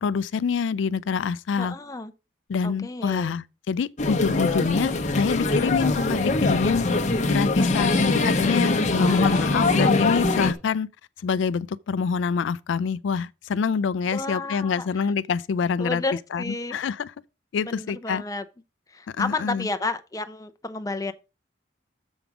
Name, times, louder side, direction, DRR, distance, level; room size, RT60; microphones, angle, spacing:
voice 1, 0.0-1.8 2.5-6.9 7.3-10.9 11.2-16.0 16.3-17.1 17.5-18.2 19.2-19.7, left 6 dB, 80° left, 0.4 m, -26 dB
voice 2, 1.6-2.1 2.6-3.3 7.6-8.3 8.9-10.0 14.1-15.1 15.8-16.8 17.6-18.4 18.9-21.1, left 3 dB, 20° left, 0.6 m, -32 dB
sound 1, 4.0-10.5, left 2 dB, 40° left, 0.9 m, -23 dB
7.2 x 5.1 x 5.9 m
head